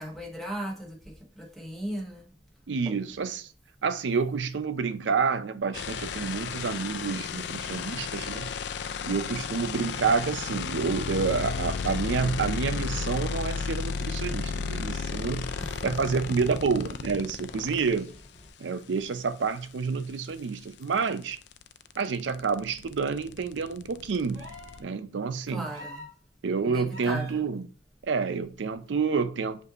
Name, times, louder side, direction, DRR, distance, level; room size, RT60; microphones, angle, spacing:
voice 1, 0.0-2.4 2.9-3.0 15.6-15.9 25.5-26.1 26.6-27.5, right 1 dB, ahead, 1.1 m, -37 dB
voice 2, 2.7-3.5 3.8-8.5 9.0-15.5 15.8-18.1 18.6-21.4 22.0-25.7 26.4-27.7 28.0-29.6, right 5 dB, 85° right, 0.5 m, -29 dB
sound 1, 5.7-18.0 20.1-20.2 20.4-24.8, left 5 dB, 65° left, 0.3 m, -33 dB
sound 2, 13.0-18.5, left 1 dB, 35° left, 0.7 m, -51 dB
sound 3, 24.3-24.9 25.7-26.2 26.9-27.4 28.9-29.0, left 1 dB, 25° right, 2.2 m, -45 dB
5.2 x 2.6 x 3.9 m
head